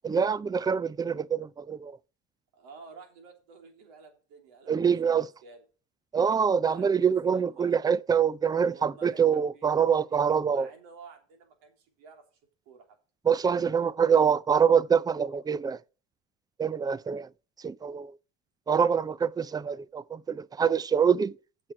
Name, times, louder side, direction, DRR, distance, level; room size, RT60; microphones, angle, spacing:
voice 1, 0.0-1.9 4.7-5.3 6.1-10.7 13.3-15.8 16.6-17.3 17.6-18.1 18.7-21.3, right 7 dB, 15° right, 0.4 m, -25 dB
voice 2, 2.5-5.1 5.4-5.6 6.7-7.7 8.6-9.2 9.5-12.3 12.6-13.0, right 4 dB, 75° right, 3.3 m, -52 dB
7.7 x 6.0 x 7.5 m
supercardioid pair, 85°, 31 cm